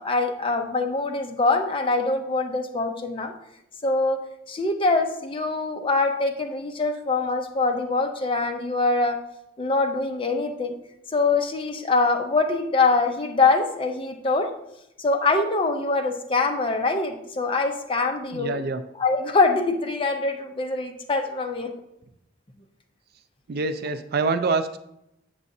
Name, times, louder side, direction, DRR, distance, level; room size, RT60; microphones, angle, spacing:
voice 1, 0.0-3.3 3.8-4.2 4.5-9.2 9.6-10.7 11.1-14.5 15.0-18.6 19.0-21.7, left 3 dB, 25° left, 4 dB, 0.5 m, -24 dB
voice 2, 18.3-18.8 23.5-24.8, right 4 dB, 50° right, 10 dB, 0.3 m, -25 dB
7.3 x 6.9 x 2.7 m, 0.82 s
head